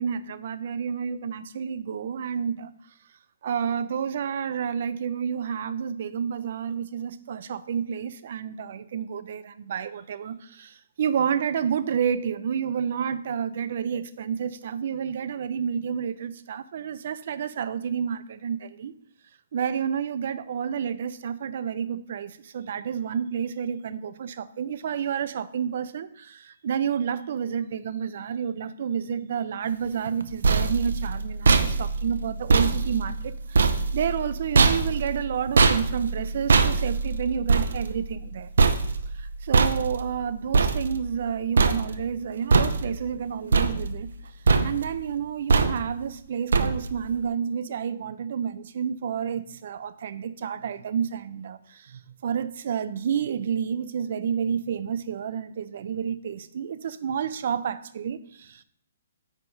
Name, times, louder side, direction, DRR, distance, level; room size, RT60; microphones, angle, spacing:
voice 1, 0.0-2.7 3.4-18.9 19.5-38.5 39.1-44.1 44.6-58.6, right 7 dB, 50° right, 14 dB, 0.4 m, -30 dB
sound 1, 30.1-41.3 41.6-42.2 42.5-43.2 43.5-44.2 44.5-45.0 45.5-46.0 46.5-47.1, right 4 dB, 80° right, 0.7 m, -23 dB
9.0 x 3.4 x 5.3 m, 0.67 s
hypercardioid pair, 165°, 0 cm